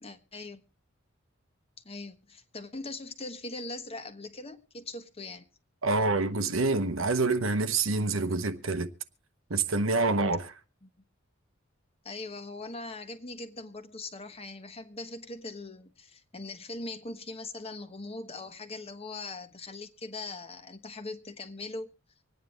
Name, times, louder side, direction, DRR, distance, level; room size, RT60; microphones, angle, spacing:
voice 1, 0.0-0.6 1.8-5.5 10.8-10.9 12.0-21.9, left 2 dB, 30° left, 1.3 m, -41 dB
voice 2, 5.8-8.9 9.5-10.5, right 3 dB, 80° right, 1.1 m, -27 dB
25.5 x 9.4 x 3.1 m
head